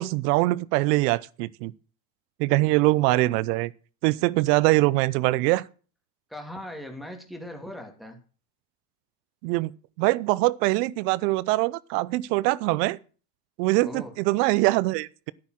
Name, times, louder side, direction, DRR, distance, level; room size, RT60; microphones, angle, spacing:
voice 1, 0.0-1.7 2.4-3.7 4.0-5.6 9.4-9.7 10.0-13.0 13.6-15.3, right 20 dB, 75° right, 0.8 m, -23 dB
voice 2, 6.3-8.2 13.8-14.1, left 1 dB, ahead, 2.4 m, -39 dB
11.0 x 9.0 x 6.3 m
supercardioid pair, 125°, 48 cm